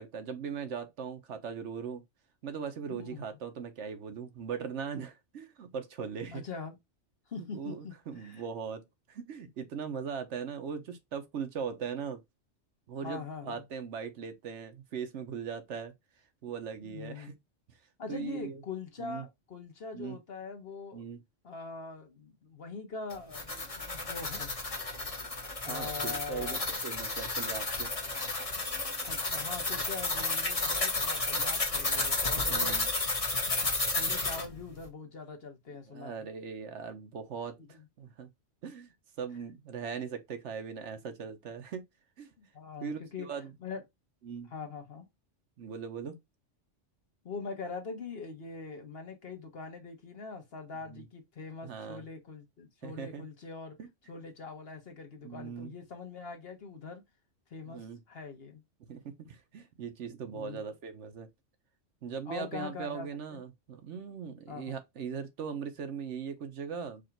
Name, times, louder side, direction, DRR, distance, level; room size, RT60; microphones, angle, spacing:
voice 1, 0.0-2.0 2.4-6.4 7.4-12.2 12.9-15.9 16.4-17.3 18.1-18.6 19.0-19.3 19.9-20.2 20.9-21.2 25.7-27.9 32.5-32.9 35.9-38.3 38.6-38.9 39.2-41.8 42.2-42.3 42.8-43.5 44.2-44.5 45.6-46.1 50.9-51.1 51.6-52.0 52.8-53.2 53.8-53.9 55.2-55.7 57.7-58.0 58.9-61.3 62.0-67.0, right 6 dB, 70° right, 1.1 m, -39 dB
voice 2, 2.9-3.2 6.3-6.8 7.3-8.4 13.0-13.6 16.8-17.4 18.0-21.0 21.4-24.5 25.6-26.6 29.0-32.8 33.5-33.6 33.9-36.3 37.6-37.9 42.4-43.3 43.6-43.8 44.5-45.0 47.2-53.8 54.1-57.0 57.5-58.6 60.3-60.6 62.3-63.4 64.5-64.8, left 4 dB, 55° left, 1.2 m, -43 dB
sound 1, 23.1-34.5, left 3 dB, 30° left, 1.2 m, -32 dB
4.9 x 2.5 x 4.4 m
omnidirectional pair, 1.3 m